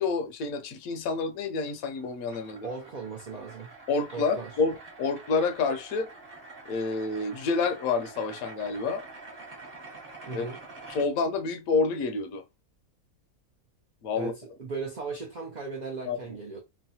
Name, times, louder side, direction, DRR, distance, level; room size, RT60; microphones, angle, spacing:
voice 1, 0.0-2.7 3.9-6.1 6.7-9.0 10.3-10.5 10.9-12.4 14.0-14.3 16.1-16.2, left 4 dB, 75° left, 1.0 m, -28 dB
sound 1, 1.6-11.1, right 3 dB, 35° right, 0.7 m, -47 dB
voice 2, 2.6-3.7 4.1-4.5 10.3-10.6 14.1-16.6, right 4 dB, 85° right, 0.3 m, -37 dB
3.2 x 2.0 x 2.7 m
omnidirectional pair, 1.6 m